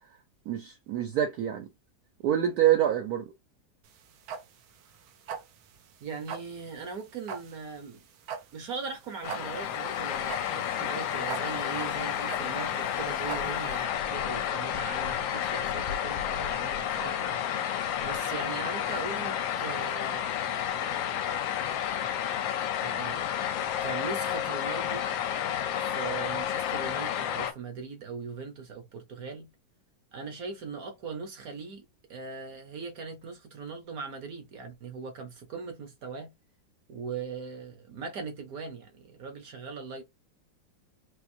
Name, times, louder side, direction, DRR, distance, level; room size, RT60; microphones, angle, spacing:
voice 1, 0.5-1.7 2.2-3.3, right 11 dB, 75° right, 0.9 m, -26 dB
sound 1, 3.8-13.8, right 7 dB, 90° right, 1.5 m, -41 dB
voice 2, 6.0-8.0 8.5-20.3 22.8-23.3 23.8-25.0 25.8-29.5 30.1-31.8 32.1-36.3 36.9-40.0, right 5 dB, 60° right, 1.1 m, -40 dB
sound 2, 9.2-27.5, left 10 dB, 80° left, 1.3 m, -31 dB
4.4 x 2.4 x 2.6 m
omnidirectional pair, 2.1 m